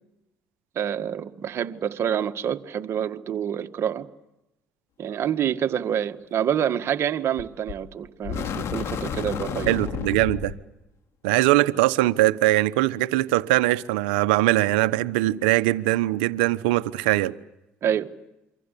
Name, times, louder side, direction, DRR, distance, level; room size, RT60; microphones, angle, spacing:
voice 1, 0.8-4.1 5.0-9.8 17.8-18.1, right 9 dB, 55° right, 1.7 m, -27 dB
sound 1, 7.4-7.8 8.2-10.6, left 7 dB, 60° left, 3.0 m, -31 dB
voice 2, 9.7-10.5 11.2-17.3, right 17 dB, 85° right, 1.0 m, -21 dB
27.5 x 25.0 x 8.5 m
hypercardioid pair, 65°, 5 cm